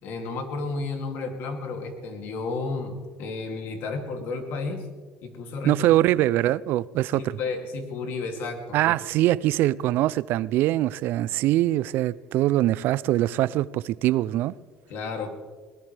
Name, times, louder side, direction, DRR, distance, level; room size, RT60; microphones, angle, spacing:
voice 1, 0.0-4.8 5.2-5.8 7.1-8.8 14.9-15.3, left 3 dB, 65° left, 2.6 m, -32 dB
voice 2, 5.6-7.4 8.7-14.5, right 15 dB, 65° right, 0.4 m, -23 dB
21.5 x 19.5 x 3.4 m
cardioid pair, 140°, 4 cm